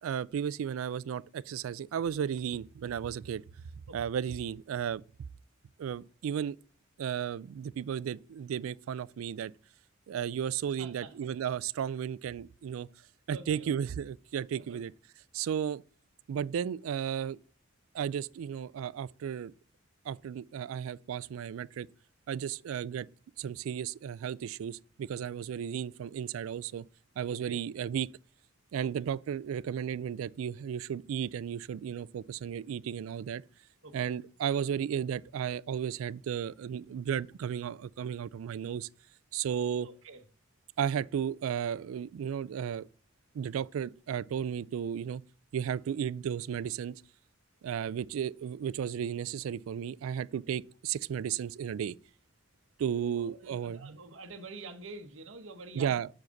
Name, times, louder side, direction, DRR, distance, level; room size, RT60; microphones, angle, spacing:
voice 1, 0.0-3.4 3.9-5.0 5.8-6.6 7.0-9.5 10.1-12.9 13.3-14.9 15.3-15.8 16.3-17.4 17.9-19.5 20.1-21.9 22.3-23.1 23.4-26.9 27.2-28.1 28.7-33.4 33.9-38.9 39.3-39.9 40.8-42.9 43.3-45.2 45.5-47.0 47.6-51.9 52.8-54.0 55.7-56.1, right 8 dB, 90° right, 0.3 m, -34 dB
voice 2, 10.8-11.3 13.3-13.7 14.6-14.8 27.3-27.6 29.0-29.1 33.8-34.1 39.8-40.2 53.0-56.0, right 3 dB, 70° right, 1.0 m, -47 dB
6.4 x 4.9 x 5.8 m
head